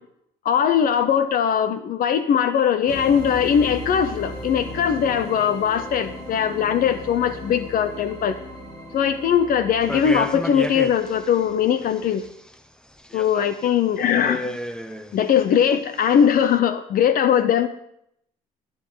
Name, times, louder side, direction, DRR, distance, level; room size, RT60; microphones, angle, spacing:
voice 1, 0.4-8.3 8.9-12.3 13.1-14.4 15.1-17.7, left 8 dB, 60° left, 11 dB, 0.8 m, -20 dB
sound 1, 2.9-12.2, left 1 dB, 25° left, 2.9 m, -37 dB
sound 2, 9.8-11.3 11.8-12.5 13.0-13.7 14.0-15.4 16.0-16.5, left 1 dB, 5° left, 0.8 m, -32 dB
15.0 x 8.9 x 3.9 m, 0.74 s
cardioid pair, 110°, 17 cm